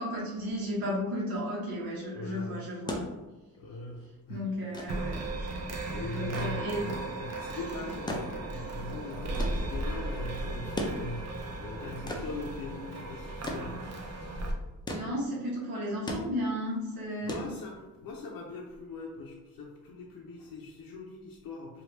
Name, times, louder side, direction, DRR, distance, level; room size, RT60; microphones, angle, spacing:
voice 1, 0.0-3.0 4.3-5.6 6.1-6.9 14.9-17.4, equal, 70° right, -4 dB, 1.0 m, -34 dB
voice 2, 2.1-2.6 3.6-4.4 5.5-13.9 17.2-21.8, left 2 dB, 65° left, -2 dB, 0.6 m, -41 dB
sound 1, 2.6-18.1 19.4-19.5, left 1 dB, 10° left, 0.4 m, -40 dB
sound 2, 4.9-14.5, right 2 dB, 45° right, 0.6 m, -36 dB
3.2 x 2.4 x 3.0 m, 1.1 s
cardioid pair, 125°, 37 cm